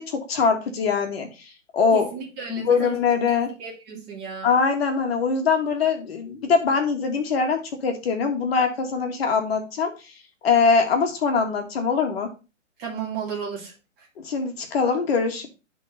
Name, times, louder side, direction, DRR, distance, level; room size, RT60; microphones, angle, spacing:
voice 1, 0.0-2.1 2.5-3.5 4.4-9.9 10.4-12.3 14.2-15.5, left 5 dB, 55° left, 4 dB, 1.8 m, -22 dB
voice 2, 1.9-3.0 3.3-4.5 12.8-14.1, right 6 dB, 25° right, 0 dB, 2.1 m, -34 dB
11.0 x 3.9 x 3.9 m, 0.30 s
hypercardioid pair, 140°, 37 cm